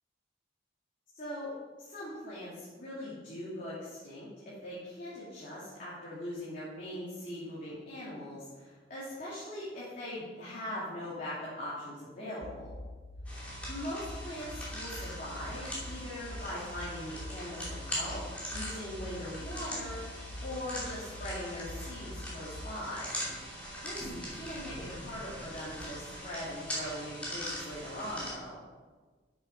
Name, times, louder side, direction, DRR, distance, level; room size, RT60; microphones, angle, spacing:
voice 1, 1.1-1.5 1.8-12.7 13.7-18.2 18.5-20.0 20.4-23.1 23.8-28.6, left 1 dB, 45° left, -9 dB, 3.0 m, -41 dB
sound 1, 12.4-22.8, left 1 dB, 20° left, 0.7 m, -45 dB
sound 2, 13.3-28.3, equal, 5° left, 2.7 m, -41 dB
8.8 x 7.4 x 5.5 m, 1.4 s
head